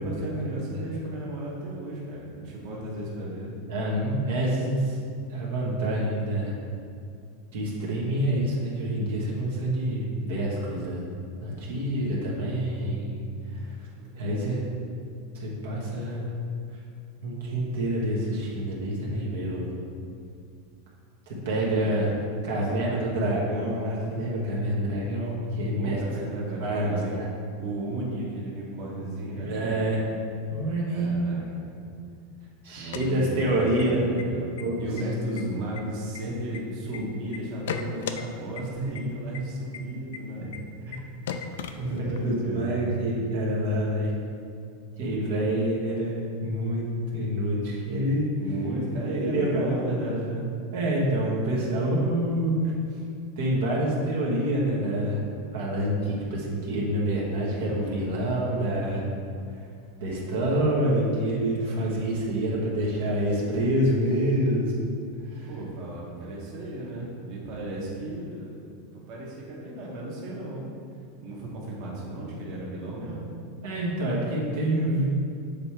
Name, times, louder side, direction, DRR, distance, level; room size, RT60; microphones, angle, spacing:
voice 1, 0.0-3.5 14.0-14.8 21.7-22.0 22.5-23.2 25.8-27.2 27.6-30.1 30.9-31.9 32.8-34.5 34.8-40.6 41.8-42.9 48.3-50.5 65.4-68.6 68.9-70.7 71.2-73.2, right 1 dB, 55° right, -4 dB, 1.3 m, -34 dB
voice 2, 3.7-5.0 5.3-6.6 7.5-11.0 11.4-13.2 13.5-13.7 14.2-14.6 15.3-16.2 17.2-19.7 21.3-22.1 22.4-26.0 26.6-27.3 29.3-30.0 30.5-31.2 32.6-34.1 34.6-34.9 36.9-37.0 40.9-41.0 41.8-42.0 42.2-44.1 45.0-46.8 47.1-48.3 49.1-49.8 50.7-52.7 53.4-55.2 55.5-59.0 60.0-64.7 65.3-65.5 73.6-75.2, right 1 dB, 80° right, -4 dB, 1.3 m, -27 dB
sound 1, 32.7-33.8 34.2-34.3 34.6-35.0 35.4-37.0 37.3-38.2 38.6-38.7 38.9-39.0 39.3-39.4 39.7-39.8 40.1-40.2 40.5-40.6 40.9-41.0 41.3-42.3, left 7 dB, 85° left, 0.4 m, -35 dB
6.7 x 3.4 x 4.4 m, 2.4 s
supercardioid pair, 125°, 0 cm